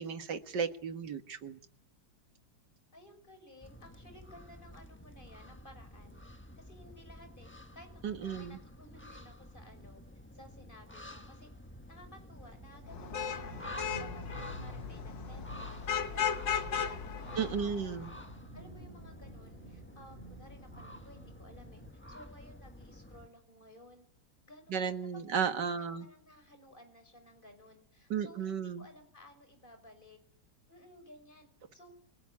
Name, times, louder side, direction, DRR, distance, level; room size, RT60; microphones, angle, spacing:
voice 1, 0.0-1.6 8.0-8.6 17.4-18.1 24.7-26.1 28.1-28.8, right 7 dB, 75° right, 8 dB, 2.2 m, -34 dB
voice 2, 2.9-6.2 6.6-10.0 10.3-11.5 11.9-18.0 18.5-21.8 22.1-24.1 24.4-30.2 30.7-32.0, left 1 dB, 25° left, 6 dB, 6.3 m, -56 dB
sound 1, 3.6-23.3, left 1 dB, 5° left, 1.2 m, -51 dB
sound 2, 10.4-21.9, right 3 dB, 30° right, 5.8 m, -52 dB
Vehicle horn car horn honking / Traffic noise roadway noise, 12.9-18.2, left 7 dB, 90° left, 2.0 m, -36 dB
28.5 x 19.5 x 9.8 m, 0.65 s
omnidirectional pair, 1.9 m